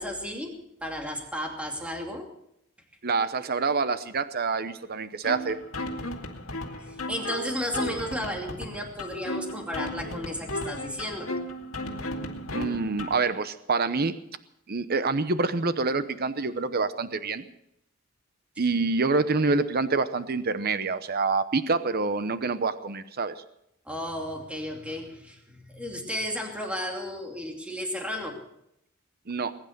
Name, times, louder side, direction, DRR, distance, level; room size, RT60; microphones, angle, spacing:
voice 1, 0.0-2.3 6.8-11.3 23.8-28.4, equal, 5° right, 1 dB, 2.6 m, -34 dB
voice 2, 3.0-5.6 12.5-14.2 14.7-17.5 18.6-23.3 29.3-29.5, right 4 dB, 45° right, 12 dB, 0.8 m, -26 dB
sound 1, 5.2-13.2, left 1 dB, 80° left, 2.3 m, -35 dB
21.0 x 10.5 x 6.6 m, 0.78 s
head